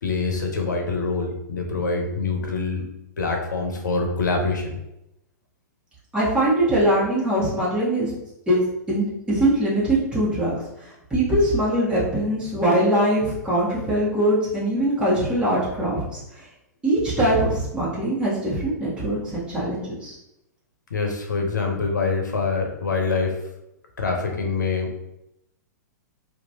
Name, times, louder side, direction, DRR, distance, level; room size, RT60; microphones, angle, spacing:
voice 1, 0.0-2.8 3.2-4.8 20.9-23.4 24.0-24.9, left 4 dB, 80° left, 2 dB, 0.7 m, -25 dB
voice 2, 6.1-8.1 8.5-8.6 8.9-10.6 11.1-16.2 16.8-20.2, right 1 dB, 10° right, -9 dB, 1.4 m, -22 dB
2.8 x 2.5 x 2.7 m, 0.86 s
figure-of-eight pair, 105°, 10 cm